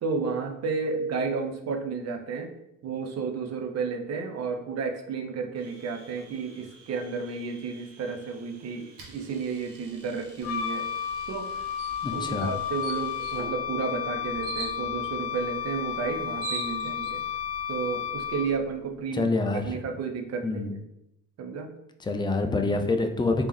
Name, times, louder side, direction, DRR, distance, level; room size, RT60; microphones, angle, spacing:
voice 1, 0.0-2.5 2.8-10.9 11.3-11.5 12.1-17.2 17.7-19.3 19.7-20.7 21.4-21.7, right 5 dB, 35° right, 4 dB, 0.6 m, -32 dB
Domestic sounds home sounds, 5.6-13.5, right 3 dB, 55° right, 1.3 m, -53 dB
Wind instrument woodwind instrument, 10.4-18.7, left 8 dB, 60° left, 0.7 m, -32 dB
sound 1, 11.8-12.0 12.4-12.5 12.8-13.4 14.4-14.7 15.9-16.0 16.2-17.1, right 5 dB, 80° right, 0.8 m, -36 dB
voice 2, 12.0-12.5 19.1-19.8 20.4-20.7 22.0-23.5, left 3 dB, 10° left, 5 dB, 0.4 m, -26 dB
3.4 x 3.0 x 3.1 m, 0.82 s
hypercardioid pair, 45°, 45 cm